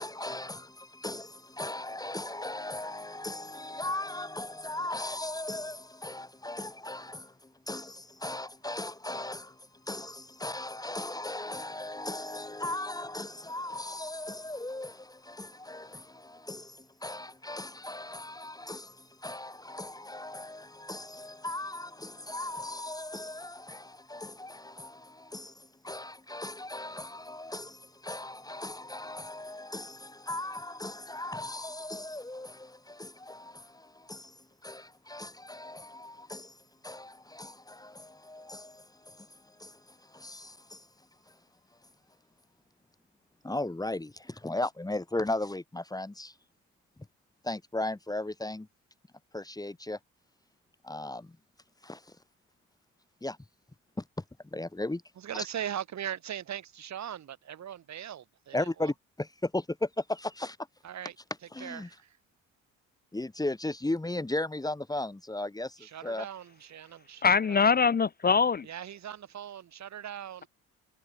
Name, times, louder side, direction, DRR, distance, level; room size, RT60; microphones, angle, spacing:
voice 1, 0.0-36.6 36.8-40.9 43.4-46.3 47.4-48.7 49.3-50.0 50.8-51.4 51.8-52.0 53.2-53.4 54.0-54.1 54.5-55.0 58.5-60.6 61.5-61.9 63.1-66.2, left 2 dB, 10° left, 2.6 m, -37 dB
voice 2, 55.2-58.9 60.8-61.2 61.6-62.2 65.8-67.8 68.6-70.5, right 10 dB, 65° right, 7.6 m, -40 dB
voice 3, 67.2-68.7, left 5 dB, 30° left, 0.8 m, -23 dB
cardioid pair, 90°, 30 cm